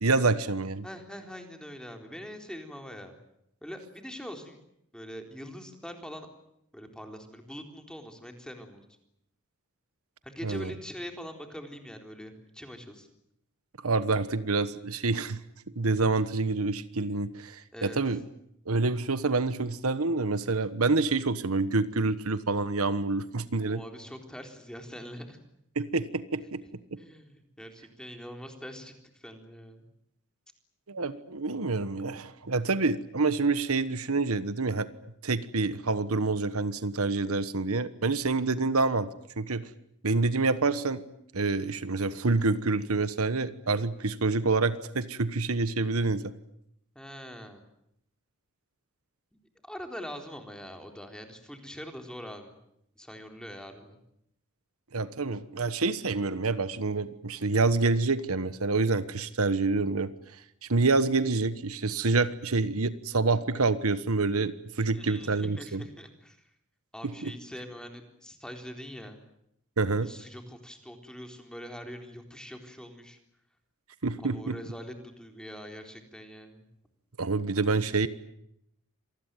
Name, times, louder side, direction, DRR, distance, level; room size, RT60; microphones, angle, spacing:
voice 1, 0.0-0.8 10.4-10.7 13.8-15.4 15.8-18.2 18.7-23.8 25.7-26.6 30.9-34.9 35.2-39.1 39.4-39.6 40.0-41.0 41.3-46.3 54.9-60.1 60.6-65.9 67.2-67.3 69.8-70.1 74.0-74.6 77.2-78.1, right 3 dB, 80° right, 13 dB, 1.3 m, -27 dB
voice 2, 0.8-3.2 3.6-4.6 4.9-6.3 6.7-8.8 10.2-13.1 17.7-18.0 23.6-25.4 27.0-29.8 47.0-47.6 49.6-52.6 53.0-54.0 64.9-66.4 66.9-69.2 69.9-73.2 74.2-76.6, equal, 5° left, 4 dB, 3.9 m, -43 dB
27.0 x 20.0 x 9.2 m, 0.75 s
head